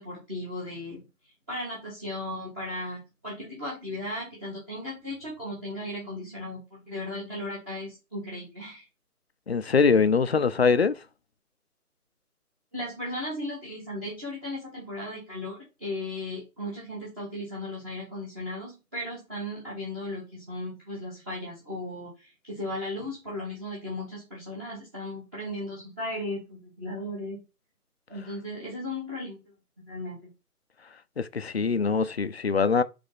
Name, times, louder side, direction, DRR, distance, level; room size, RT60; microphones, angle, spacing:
voice 1, 0.0-8.9 12.7-27.4 28.1-30.3, left 1 dB, 10° right, 1.0 m, -36 dB
voice 2, 9.5-10.9 31.2-32.8, left 5 dB, 45° left, 0.5 m, -23 dB
5.1 x 3.4 x 5.5 m
figure-of-eight pair, 155°, 45 cm